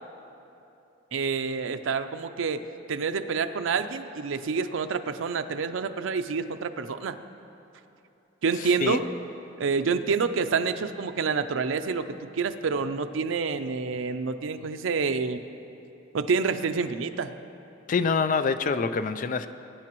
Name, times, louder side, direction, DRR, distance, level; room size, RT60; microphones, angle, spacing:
voice 1, 1.1-2.6 2.9-7.2 8.4-9.1 9.6-15.4 16.1-17.3, right 5 dB, 85° right, 8 dB, 0.5 m, -28 dB
voice 2, 8.6-9.0 17.9-19.5, left 5 dB, 45° left, 11 dB, 0.4 m, -26 dB
21.0 x 9.6 x 3.0 m, 2.8 s
head